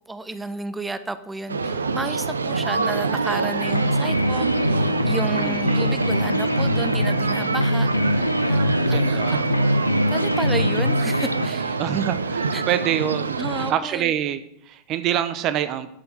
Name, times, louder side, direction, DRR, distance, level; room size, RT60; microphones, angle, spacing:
voice 1, 0.1-9.2 9.5-9.7 10.1-11.8 12.5-12.6 13.4-14.1, right 2 dB, 10° right, 11 dB, 0.9 m, -32 dB
sound 1, 1.5-13.7, right 4 dB, 75° right, 0.7 m, -26 dB
sound 2, 3.6-11.5, left 1 dB, 85° left, 0.6 m, -23 dB
voice 2, 5.3-6.3 8.8-9.5 11.8-15.9, right 10 dB, 35° right, 12 dB, 0.8 m, -26 dB
11.5 x 7.1 x 8.1 m, 0.73 s
figure-of-eight pair, 90°, 0 cm